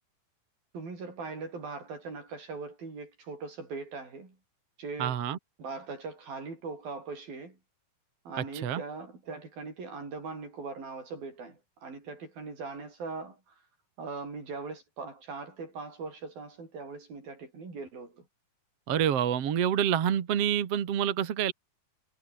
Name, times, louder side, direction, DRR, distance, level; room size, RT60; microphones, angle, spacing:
voice 1, 0.7-4.4 4.8-5.2 5.6-7.6 8.3-13.6 14.0-18.3, right 4 dB, 80° right, 9.4 m, -40 dB
voice 2, 5.0-5.4 8.6-8.8 18.9-21.5, right 9 dB, 50° right, 2.5 m, -27 dB
omnidirectional pair, 4.1 m